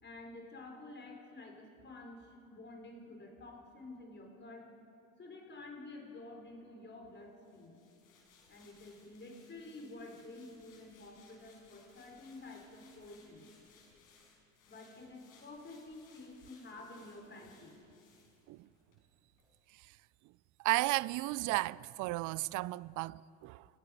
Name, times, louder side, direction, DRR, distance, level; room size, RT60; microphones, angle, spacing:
voice 1, 0.0-4.7 5.2-7.8 8.5-13.5 14.7-17.8, left 2 dB, 25° left, 4.8 m, -50 dB
sound 1, 7.4-19.0 19.3-19.5, left 5 dB, 85° left, 5.3 m, -65 dB
voice 2, 20.6-23.7, right 20 dB, 50° right, 0.5 m, -34 dB
29.0 x 17.5 x 5.4 m
hypercardioid pair, 75°, 41 cm